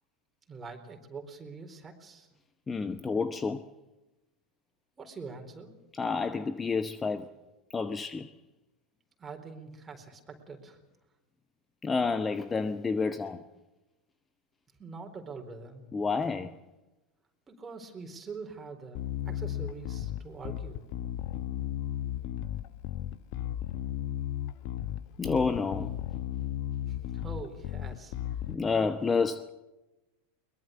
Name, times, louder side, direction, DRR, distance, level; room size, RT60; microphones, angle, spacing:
voice 1, 0.5-2.3 5.0-5.7 9.2-10.8 14.8-15.8 17.5-20.8 26.9-28.4, right 4 dB, 20° right, 4.2 m, -44 dB
voice 2, 2.7-3.7 5.9-7.3 7.7-8.3 11.8-13.4 15.9-16.6 25.2-25.9 28.5-29.5, left 4 dB, 20° left, 0.9 m, -29 dB
Bass guitar, 18.9-28.5, left 12 dB, 50° left, 1.0 m, -35 dB
22.5 x 21.5 x 6.7 m
figure-of-eight pair, 85°, 0 cm